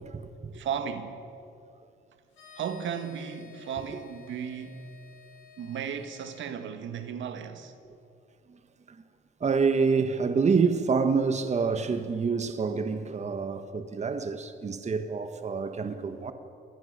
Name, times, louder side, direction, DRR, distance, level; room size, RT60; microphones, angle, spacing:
voice 1, 0.0-0.5 8.5-8.6 8.9-9.0 9.4-16.3, right 5 dB, 35° right, 1.3 m, -27 dB
voice 2, 0.5-1.2 2.5-4.9 5.6-7.7, right 7 dB, 70° right, 1.8 m, -35 dB
sound 1, 2.3-6.4, left 6 dB, 80° left, 6.7 m, -53 dB
26.5 x 19.5 x 6.7 m
cardioid pair, 90°, 20 cm